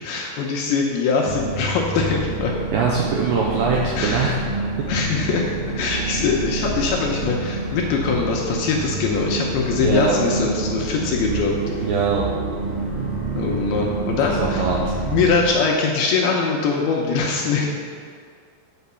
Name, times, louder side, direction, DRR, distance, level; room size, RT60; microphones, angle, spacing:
voice 1, 0.0-2.5 4.0-4.3 4.9-11.5 13.4-14.7 15.0-17.7, left 5 dB, 75° left, -1 dB, 2.4 m, -22 dB
sound 1, 1.2-15.5, right 3 dB, 45° right, 2.1 m, -28 dB
voice 2, 2.7-4.4 9.8-10.2 11.8-12.2 14.4-15.0, right 5 dB, 80° right, -2 dB, 2.1 m, -22 dB
8.2 x 5.7 x 6.9 m, 2.1 s
omnidirectional pair, 5.1 m